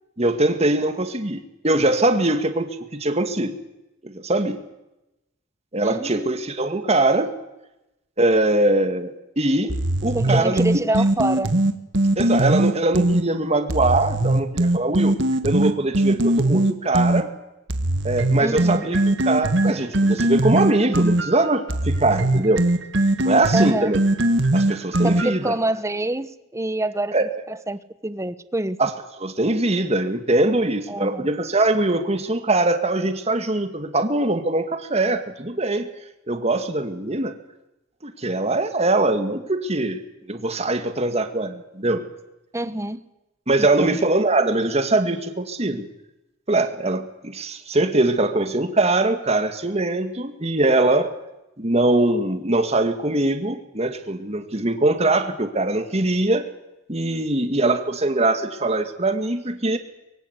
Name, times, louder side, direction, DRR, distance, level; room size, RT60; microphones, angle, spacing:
voice 1, 0.2-3.5 4.0-4.6 5.7-7.3 8.2-10.6 12.2-15.2 15.4-17.3 18.0-22.6 23.2-24.0 24.5-25.5 27.1-27.3 28.8-28.9 29.2-35.9 36.3-37.3 38.0-40.0 40.3-42.0 43.5-45.9 46.5-51.1 51.6-56.4 56.9-59.8, right 2 dB, 35° right, 7 dB, 2.2 m, -22 dB
voice 2, 5.8-6.4 10.1-11.5 18.4-18.8 23.5-23.9 25.0-28.8 30.9-31.3 42.5-43.0 43.6-44.0, right 1 dB, 15° right, 13 dB, 1.1 m, -26 dB
sound 1, 9.7-13.2 13.7-17.2 17.7-25.5, right 1 dB, 75° right, 1.7 m, -20 dB
24.0 x 23.0 x 8.3 m, 0.93 s
head